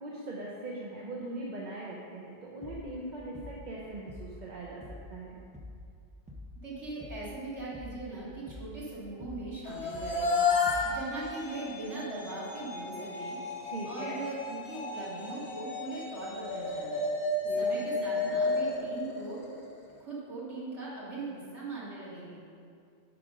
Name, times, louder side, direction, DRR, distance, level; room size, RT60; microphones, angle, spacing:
voice 1, 0.0-4.8 5.1-5.4 13.6-14.2 17.4-17.7 18.1-18.3, right 2 dB, 45° right, -4 dB, 0.8 m, -40 dB
sound 1, 2.6-3.0 3.3-3.7 4.1-4.5 4.8-5.2 5.5-5.9 6.3-6.6 7.0-7.4 7.7-8.1 8.5-8.8 9.2-9.6 9.9-10.3 10.7-11.1, left 2 dB, 10° right, 0.4 m, -46 dB
voice 2, 6.6-10.3 10.8-13.4 13.8-17.1 17.5-19.4 20.0-22.4, right 2 dB, 90° right, -8 dB, 2.4 m, -40 dB
sound 2, 9.7-19.8, left 3 dB, 75° left, 1.4 m, -32 dB
7.7 x 5.0 x 5.2 m, 2.3 s
omnidirectional pair, 1.2 m